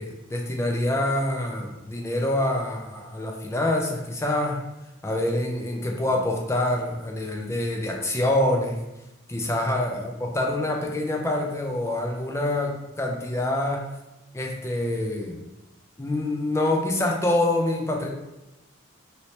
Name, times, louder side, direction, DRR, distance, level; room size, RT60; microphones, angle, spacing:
voice 1, 0.0-4.6 5.0-8.8 9.3-13.9 14.3-15.4 16.0-18.1, left 1 dB, 15° left, 0 dB, 0.4 m, -26 dB
2.8 x 2.8 x 3.1 m, 0.96 s
head